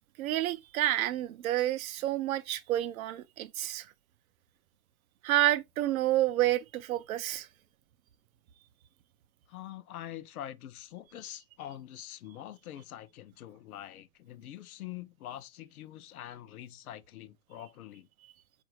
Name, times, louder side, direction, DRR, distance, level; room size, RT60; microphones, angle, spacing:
voice 1, 0.2-3.9 5.2-7.5 18.2-18.3, right 14 dB, 60° right, 0.6 m, -29 dB
voice 2, 9.5-18.1, left 12 dB, 65° left, 0.7 m, -45 dB
4.0 x 2.5 x 2.8 m
hypercardioid pair, 115°, 48 cm